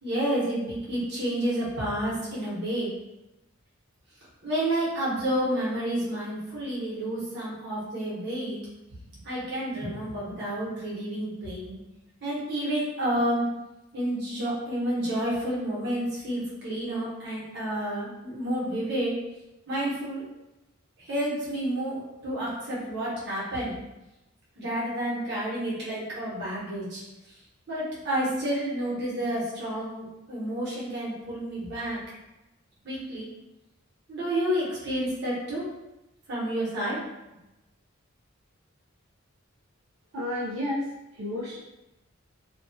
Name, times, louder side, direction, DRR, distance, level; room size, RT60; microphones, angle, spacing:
voice 1, 0.0-2.9 4.4-8.6 8.9-9.0 9.2-11.8 12.2-13.5 13.9-19.1 19.7-20.2 21.0-23.8 24.6-27.0 27.7-32.0 32.8-33.3 34.1-35.6 36.3-37.0, right 1 dB, 55° right, -8 dB, 1.1 m, -30 dB
voice 2, 40.1-40.9 41.1-41.6, left 1 dB, 75° right, -6 dB, 0.5 m, -31 dB
2.9 x 2.3 x 2.6 m, 0.95 s
head